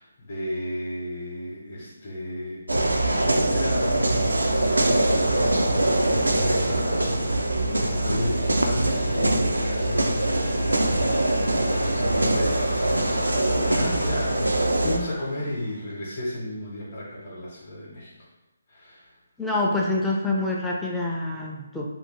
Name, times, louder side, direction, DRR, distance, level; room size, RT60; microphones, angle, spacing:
voice 1, 0.0-2.6 3.1-4.4 5.1-18.1 18.7-19.0, left 1 dB, 40° left, -6 dB, 0.8 m, -34 dB
sound 1, 2.7-15.0, right 1 dB, 85° right, 0.3 m, -23 dB
sound 2, 3.8-15.9, left 1 dB, 80° left, 0.5 m, -39 dB
voice 2, 19.4-21.9, left 2 dB, 5° left, -4 dB, 0.4 m, -26 dB
2.6 x 2.0 x 3.0 m, 1.0 s
figure-of-eight pair, 150°, 0 cm